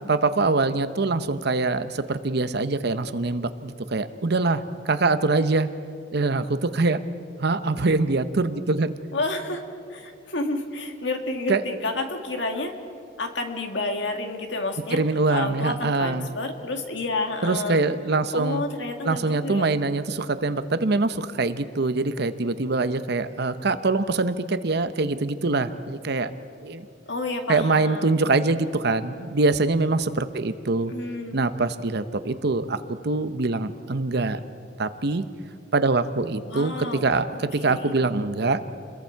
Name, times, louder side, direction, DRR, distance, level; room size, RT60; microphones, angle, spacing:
voice 1, 0.1-5.7 6.1-7.0 7.4-8.9 11.5-11.6 14.9-16.3 17.4-18.6 19.0-26.3 26.6-26.9 27.5-30.9 31.3-34.4 34.8-35.3 35.7-38.6, right 3 dB, 60° right, 11 dB, 0.8 m, -24 dB
voice 2, 9.1-9.6 9.9-12.7 13.2-15.0 15.3-17.8 18.3-19.8 27.1-28.3 30.9-31.4 36.4-37.9, left 2 dB, 70° left, 4 dB, 2.0 m, -30 dB
29.0 x 22.0 x 4.7 m, 2.4 s
head